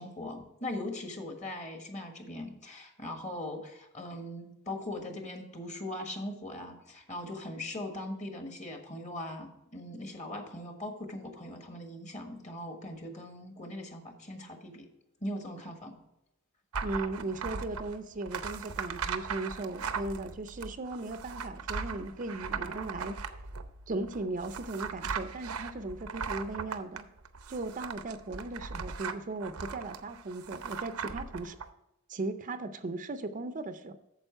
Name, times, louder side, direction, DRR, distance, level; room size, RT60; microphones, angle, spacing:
voice 1, 0.0-14.9 15.2-16.0, left 1 dB, 35° left, 4 dB, 1.5 m, -40 dB
sound 1, 16.7-31.7, right 5 dB, 80° right, 0.7 m, -38 dB
voice 2, 16.8-23.2 23.9-27.0 27.5-31.6 32.1-33.9, right 2 dB, 35° right, 9 dB, 0.5 m, -37 dB
8.9 x 7.0 x 4.5 m, 0.88 s
head